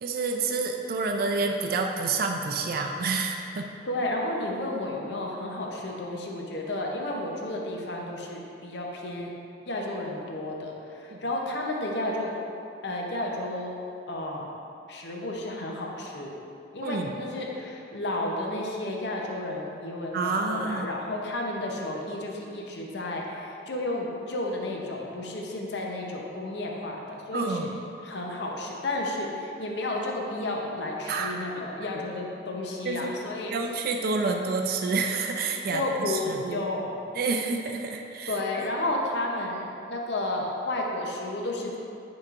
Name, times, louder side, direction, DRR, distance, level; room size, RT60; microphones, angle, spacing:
voice 1, 0.0-3.7 11.1-11.2 16.8-17.1 20.1-20.9 27.3-27.8 31.1-31.7 32.8-33.1 33.5-36.7 37.1-38.7, right 4 dB, 50° right, 3 dB, 0.4 m, -29 dB
voice 2, 3.9-9.3 9.7-12.4 12.8-13.8 14.1-14.5 14.9-16.3 16.7-27.7 28.0-33.6 35.7-37.0 38.3-41.8, left 1 dB, 65° left, -1 dB, 0.7 m, -32 dB
9.4 x 4.8 x 2.5 m, 2.7 s
head